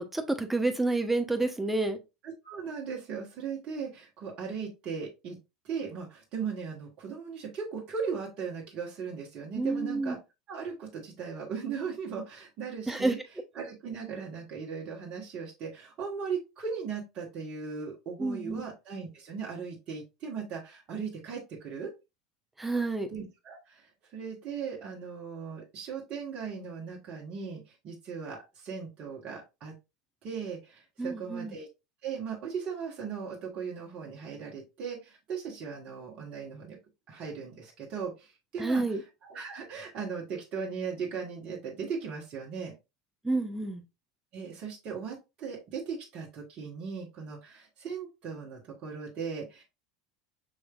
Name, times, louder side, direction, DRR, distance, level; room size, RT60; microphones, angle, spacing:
voice 1, 0.0-2.0 9.5-10.1 12.9-13.1 18.2-18.6 22.6-23.1 31.0-31.5 38.6-39.0 43.2-43.8, right 2 dB, 10° right, 1.0 m, -29 dB
voice 2, 2.2-5.4 5.6-10.2 10.5-13.2 13.5-21.9 23.1-29.7 30.2-31.7 32.0-36.8 37.1-42.7 44.3-49.6, right 6 dB, 45° right, 1.7 m, -38 dB
6.4 x 3.1 x 2.5 m
hypercardioid pair, 85°, 2 cm